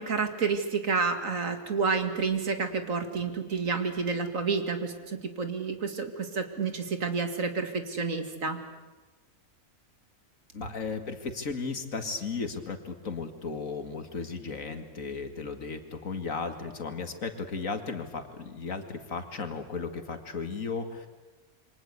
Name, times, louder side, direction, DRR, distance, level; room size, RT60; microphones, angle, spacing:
voice 1, 0.0-8.6, right 5 dB, 65° right, 7 dB, 2.5 m, -29 dB
voice 2, 10.5-21.1, left 4 dB, 65° left, 7 dB, 2.4 m, -35 dB
28.0 x 24.0 x 8.2 m, 1.2 s
omnidirectional pair, 1.5 m